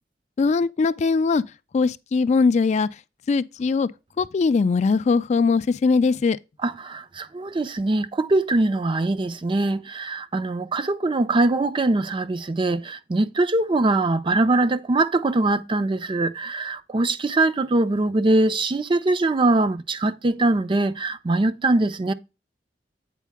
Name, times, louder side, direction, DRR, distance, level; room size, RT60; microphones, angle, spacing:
voice 1, 0.4-1.4 1.7-2.9 3.3-3.9 4.2-6.4, left 4 dB, 40° left, 0.3 m, -20 dB
voice 2, 6.6-22.1, right 2 dB, 30° right, 0.4 m, -22 dB
8.3 x 4.6 x 3.4 m
head